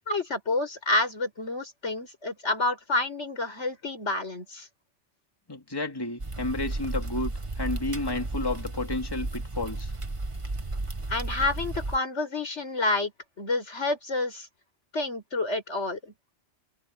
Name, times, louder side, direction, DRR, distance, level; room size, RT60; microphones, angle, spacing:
voice 1, 0.1-4.7 11.1-13.1 13.4-14.5 14.9-16.1, left 2 dB, 85° left, 5.0 m, -29 dB
voice 2, 5.5-9.9, left 2 dB, 20° left, 2.4 m, -31 dB
sound 1, 6.2-12.0, right 2 dB, 25° right, 1.4 m, -33 dB
omnidirectional pair, 1.2 m